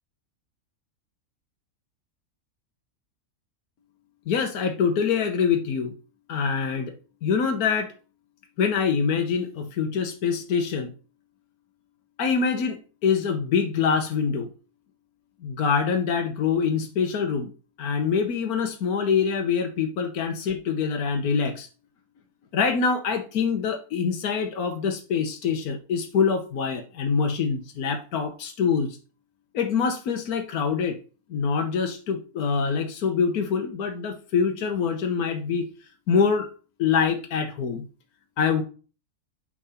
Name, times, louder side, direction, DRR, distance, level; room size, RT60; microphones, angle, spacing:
voice 1, 4.3-5.9 6.3-6.9 7.2-7.9 8.6-10.9 12.2-14.5 15.4-17.5 17.8-21.7 22.5-29.0 29.5-31.0 31.3-35.7 36.1-36.5 36.8-37.9 38.4-38.6, left 6 dB, 85° left, 5 dB, 1.4 m, -25 dB
8.5 x 3.8 x 5.6 m, 0.36 s
omnidirectional pair, 1.5 m